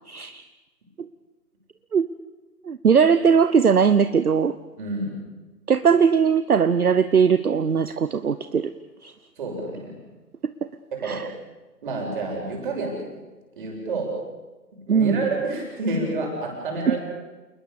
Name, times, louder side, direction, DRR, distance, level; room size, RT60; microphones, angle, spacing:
voice 1, 0.1-0.4 1.0-1.1 1.9-2.1 2.6-4.6 5.7-8.7 9.0-9.1 11.0-11.3 14.9-15.2 16.9-17.0, right 6 dB, 60° right, 13 dB, 1.0 m, -19 dB
voice 2, 4.8-5.2 9.4-9.9 10.9-11.2 11.8-13.0 13.6-14.1 14.7-17.0, right 2 dB, 30° right, 0 dB, 7.2 m, -28 dB
29.0 x 20.0 x 7.1 m, 1.2 s
figure-of-eight pair, 155°, 50 cm